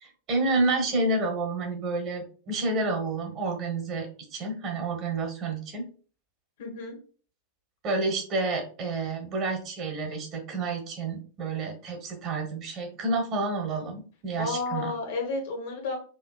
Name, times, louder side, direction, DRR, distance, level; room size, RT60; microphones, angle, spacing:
voice 1, 0.0-5.9 7.8-14.9, right 3 dB, 35° right, 4 dB, 1.2 m, -29 dB
voice 2, 6.6-7.0 14.4-16.0, left 3 dB, 55° left, 2 dB, 1.3 m, -31 dB
5.1 x 2.7 x 2.3 m, 0.40 s
figure-of-eight pair, 90°, 0 cm